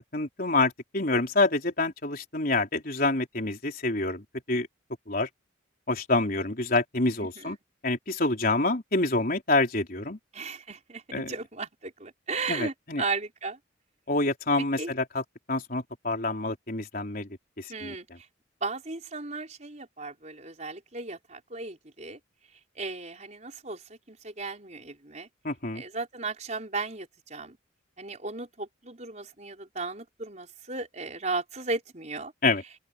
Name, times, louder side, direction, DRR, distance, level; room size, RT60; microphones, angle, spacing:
voice 1, 0.1-4.7 5.1-5.3 5.9-7.6 7.8-10.2 11.1-11.3 12.5-13.0 14.1-15.2 15.5-17.3 17.6-17.9 25.4-25.8 32.4-32.6, left 2 dB, 45° left, 4.0 m, -27 dB
voice 2, 10.3-11.0 11.3-13.6 14.8-14.9 17.7-18.0 18.6-22.2 22.8-25.3 25.7-27.6 28.0-32.3, right 3 dB, 35° right, 4.6 m, -35 dB
head